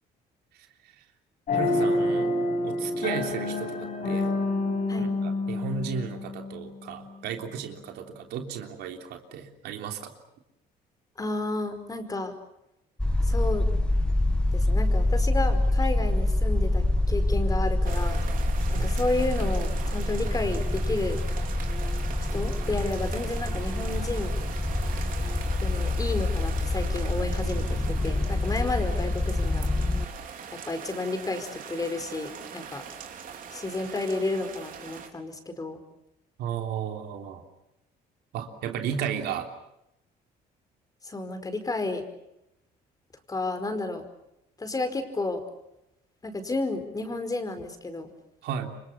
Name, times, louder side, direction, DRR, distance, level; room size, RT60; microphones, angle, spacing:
sound 1, 1.5-6.9, left 2 dB, 50° left, 5.5 m, -28 dB
voice 1, 1.5-2.3 2.6-4.3 5.0-10.1 18.7-18.9 36.4-37.4 38.3-39.5 48.4-48.8, right 7 dB, 80° right, 4 dB, 3.4 m, -34 dB
voice 2, 11.2-12.3 13.2-13.7 14.5-18.2 18.7-21.2 22.3-24.3 25.6-29.7 30.5-32.8 33.5-35.8 41.0-42.0 43.3-44.0 44.6-45.4 46.2-48.1, left 2 dB, 20° left, 8 dB, 4.9 m, -31 dB
sound 2, 13.0-30.1, left 1 dB, 5° left, 1.5 m, -26 dB
sound 3, 17.8-35.1, right 7 dB, 55° right, 4.4 m, -41 dB
28.5 x 25.0 x 7.2 m, 0.86 s
cardioid pair, 110°, 17 cm